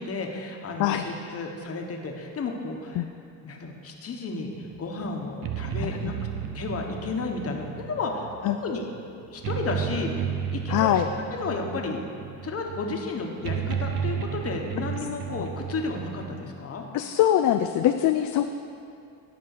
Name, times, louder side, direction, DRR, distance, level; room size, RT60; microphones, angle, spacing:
voice 1, 0.0-3.0 3.4-6.2 6.5-8.3 8.6-8.8 9.3-11.0 11.3-12.0 12.4-16.9, left 3 dB, 40° left, 2 dB, 1.3 m, -32 dB
sound 1, 4.6-16.4, right 8 dB, 70° right, 0.8 m, -33 dB
voice 2, 5.8-6.1 8.4-8.6 10.7-11.1 15.4-15.5 16.9-18.5, left 11 dB, 60° left, 7 dB, 0.5 m, -23 dB
12.0 x 5.3 x 6.7 m, 2.5 s
cardioid pair, 110°, 36 cm